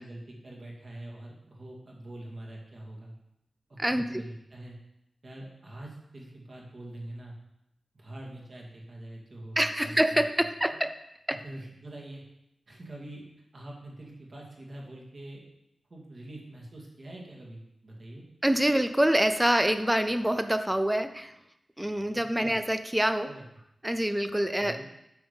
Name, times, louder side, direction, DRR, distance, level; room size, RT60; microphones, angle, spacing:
voice 1, 0.0-3.1 3.7-4.8 5.2-7.4 7.9-10.2 11.4-12.2 12.7-13.2 13.5-15.4 15.9-18.3 22.1-22.6 23.3-23.4 24.6-24.9, right 1 dB, 40° right, -1 dB, 2.2 m, -44 dB
voice 2, 3.8-4.2 9.6-10.9 11.3-11.4 18.4-21.3 21.8-23.3 23.8-24.8, right 1 dB, 5° right, 10 dB, 0.4 m, -26 dB
9.0 x 7.0 x 5.2 m, 0.84 s
wide cardioid pair, 165°, 0 cm